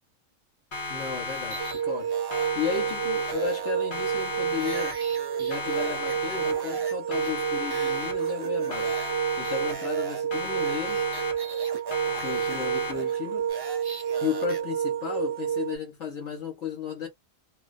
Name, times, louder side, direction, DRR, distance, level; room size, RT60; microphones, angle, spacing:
Siren, 0.7-2.0 2.3-3.6 3.9-5.2 5.5-6.8 7.1-8.4 8.7-10.0 10.3-11.6 11.9-13.2, left 2 dB, 45° left, 0.9 m, -35 dB
voice 1, 0.9-5.0 5.4-8.9 9.4-11.0 12.2-13.5 14.2-17.1, left 7 dB, 65° left, 1.1 m, -34 dB
sound 1, 1.3-2.8 3.2-6.9 7.2-7.3 7.7-9.2 9.4-14.6, right 3 dB, 40° right, 0.3 m, -41 dB
sound 2, 1.6-15.8, right 9 dB, 60° right, 0.7 m, -30 dB
2.3 x 2.2 x 2.4 m
omnidirectional pair, 1.3 m